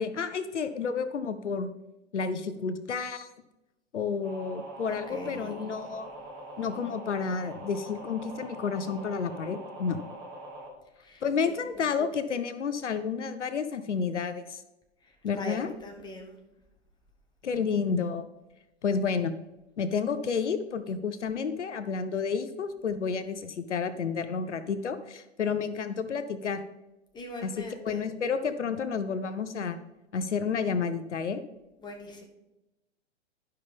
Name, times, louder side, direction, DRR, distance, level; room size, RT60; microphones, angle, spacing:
voice 1, 0.0-1.7 2.1-3.3 3.9-6.1 6.6-10.0 11.2-14.6 15.2-15.7 17.4-18.3 18.8-19.3 19.8-26.6 27.4-29.8 30.1-31.4, left 5 dB, 75° left, 11 dB, 0.6 m, -30 dB
sound 1, 4.2-10.7, right 1 dB, 30° right, 2.1 m, -43 dB
voice 2, 5.1-5.5 11.0-11.5 15.4-16.4 27.1-28.1 31.8-32.2, left 1 dB, 10° left, 2 dB, 1.1 m, -41 dB
11.5 x 5.5 x 3.4 m, 0.99 s
figure-of-eight pair, 100°, 35 cm